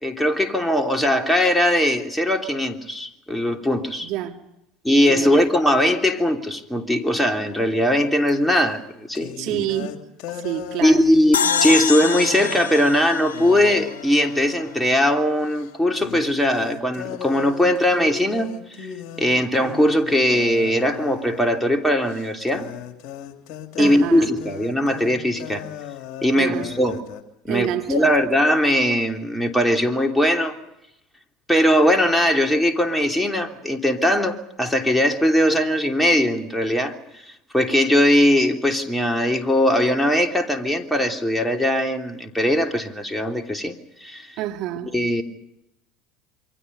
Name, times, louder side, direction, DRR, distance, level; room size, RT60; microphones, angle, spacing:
voice 1, 0.0-4.1 4.8-9.6 10.8-18.9 19.2-22.7 23.8-25.6 26.2-27.0 27.4-30.6 31.5-36.9 37.5-43.7 44.0-44.3 44.9-45.2, equal, 5° left, 3.1 m, -20 dB
voice 2, 4.0-4.4 5.1-5.4 9.4-9.9 10.3-11.1 23.8-24.3 26.4-26.7 27.5-28.1 44.4-44.9, right 13 dB, 60° right, 2.4 m, -28 dB
sound 1, 8.3-8.4 9.1-15.2 15.5-15.7 15.9-27.2, left 8 dB, 55° left, 2.9 m, -37 dB
sound 2, 11.3-14.6, left 6 dB, 85° left, 1.0 m, -26 dB
28.0 x 24.0 x 5.5 m
hypercardioid pair, 70°, 0 cm